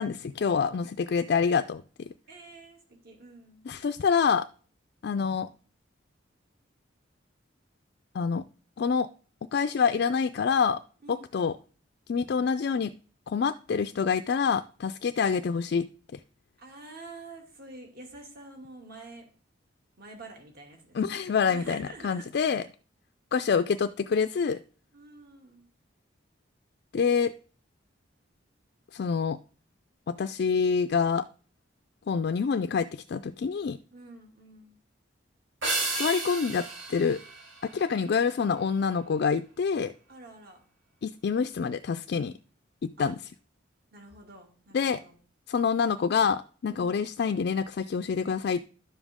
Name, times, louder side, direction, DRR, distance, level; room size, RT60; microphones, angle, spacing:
voice 1, 0.0-2.1 3.7-4.5 5.0-5.5 8.1-8.4 8.8-9.1 9.5-10.8 11.1-11.6 12.1-12.9 13.3-15.9 16.1-16.2 20.9-22.6 23.3-24.6 26.9-27.3 28.9-29.4 30.1-31.3 32.1-33.8 35.9-36.6 36.9-37.2 37.6-39.9 41.0-42.3 42.8-43.2 44.7-45.0 45.5-48.7, left 6 dB, 55° left, 10 dB, 0.3 m, -26 dB
voice 2, 2.3-3.7 11.0-11.3 16.6-19.3 20.0-21.2 21.5-22.3 24.9-25.7 33.9-34.8 40.1-40.6 43.0-43.1 43.9-45.2 46.7-47.0, right 2 dB, 50° right, 1 dB, 2.5 m, -47 dB
sound 1, 35.6-38.2, right 3 dB, 90° right, 4.4 m, -33 dB
11.0 x 7.2 x 3.6 m, 0.40 s
head